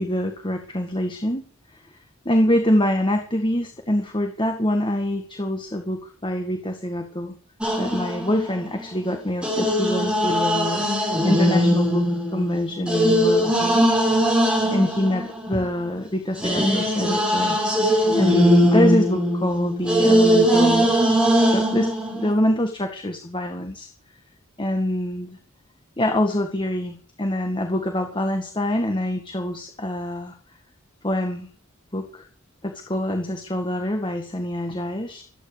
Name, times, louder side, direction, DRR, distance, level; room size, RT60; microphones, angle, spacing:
voice 1, 0.0-1.4 2.3-7.3 7.8-12.0 12.3-13.9 14.7-17.6 18.1-21.0 21.4-23.9 24.6-25.3 26.0-30.3 31.0-31.5 31.9-32.2 32.6-35.2, left 1 dB, 25° left, 5 dB, 1.9 m, -25 dB
sound 1, 7.6-8.9 9.4-15.9 16.4-22.3, equal, 5° right, 5.9 m, -20 dB
23.0 x 9.9 x 5.2 m, 0.43 s
head